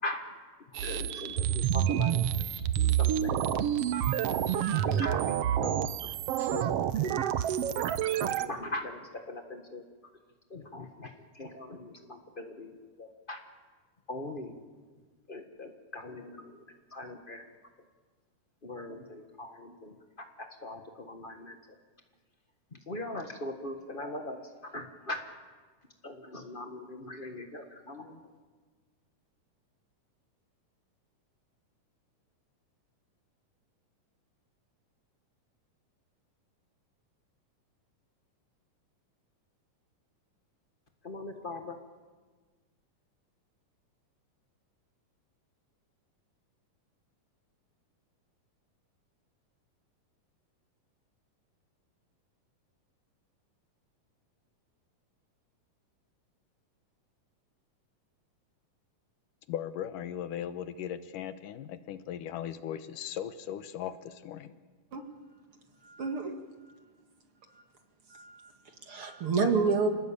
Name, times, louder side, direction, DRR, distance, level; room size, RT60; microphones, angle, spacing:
voice 1, 0.0-0.4 0.7-2.3 2.5-3.9 4.3-7.5 8.2-9.9 10.5-13.4 14.1-14.6 15.3-16.6 16.9-17.5 18.6-21.6 22.7-25.2 26.0-28.2 41.0-41.8, left 2 dB, 60° left, 5 dB, 0.5 m, -41 dB
sound 1, 0.7-8.5, right 10 dB, 70° right, 1.5 m, -28 dB
voice 2, 59.5-64.5, left 10 dB, 80° left, 11 dB, 2.6 m, -38 dB
voice 3, 65.8-66.3 67.5-67.6 68.1-69.9, right 4 dB, 45° right, 5 dB, 2.7 m, -29 dB
28.0 x 20.0 x 8.7 m, 1.4 s
omnidirectional pair, 3.8 m